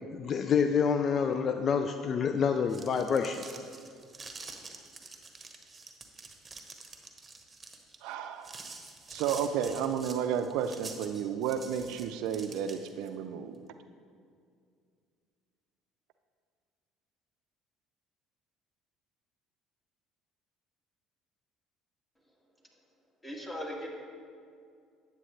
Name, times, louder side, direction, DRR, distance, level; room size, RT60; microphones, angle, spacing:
voice 1, 0.1-3.5, left 6 dB, 50° left, 8 dB, 0.4 m, -27 dB
sound 1, 2.5-13.1, right 3 dB, 25° right, 1.1 m, -47 dB
voice 2, 8.0-8.6 9.1-13.6, right 8 dB, 70° right, 9 dB, 0.4 m, -32 dB
voice 3, 23.2-23.9, equal, 20° left, -2 dB, 2.3 m, -38 dB
9.9 x 8.2 x 3.3 m, 2.3 s
hypercardioid pair, 65°, 0 cm